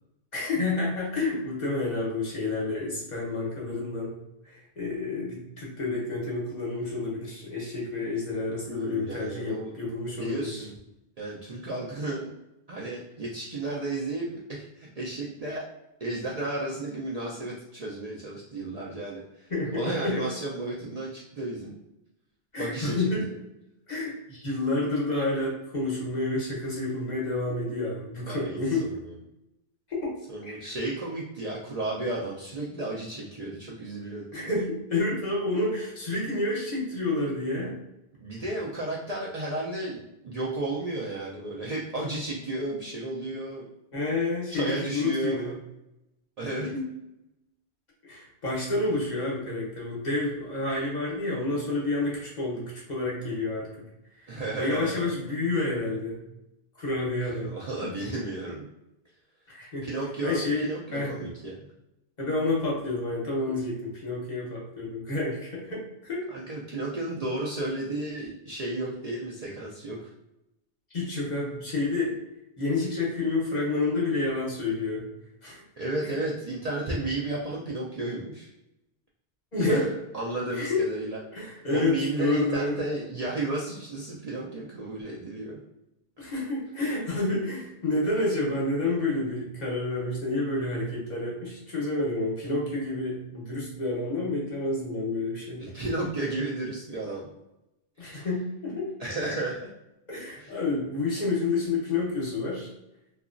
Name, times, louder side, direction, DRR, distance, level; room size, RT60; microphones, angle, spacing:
voice 1, 0.3-4.1 4.5-10.7 19.5-20.3 22.5-23.2 23.9-28.9 29.9-30.2 30.4-30.7 34.3-37.8 43.9-45.5 46.4-46.9 48.0-53.7 54.2-56.2 56.8-57.9 59.5-59.9 60.2-61.1 62.2-66.2 70.9-72.1 72.6-75.1 75.4-75.6 76.0-76.2 79.5-79.9 80.5-80.8 81.3-82.8 86.2-95.7 98.0-98.9 100.1-102.7, left 2 dB, 45° left, -4 dB, 0.9 m, -29 dB
voice 2, 8.7-9.7 10.2-10.7 11.2-12.3 12.7-15.6 16.0-21.7 22.6-23.3 28.3-29.0 30.3-34.5 38.2-40.0 40.2-43.6 44.5-45.5 46.4-46.7 54.3-55.0 57.4-58.7 59.8-61.7 66.3-70.1 75.8-78.5 79.6-81.2 81.7-85.6 95.6-97.3 98.0-98.3 99.0-99.7 100.3-100.6, right 2 dB, 50° right, -5 dB, 0.5 m, -33 dB
2.9 x 2.4 x 2.5 m, 0.90 s
omnidirectional pair, 1.1 m